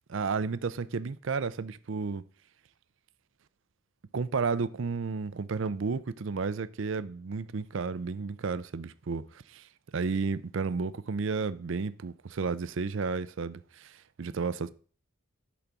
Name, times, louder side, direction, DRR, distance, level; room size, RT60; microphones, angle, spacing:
voice 1, 0.1-2.2 4.1-14.7, right 4 dB, 60° right, 0.5 m, -32 dB
10.0 x 4.0 x 6.0 m
head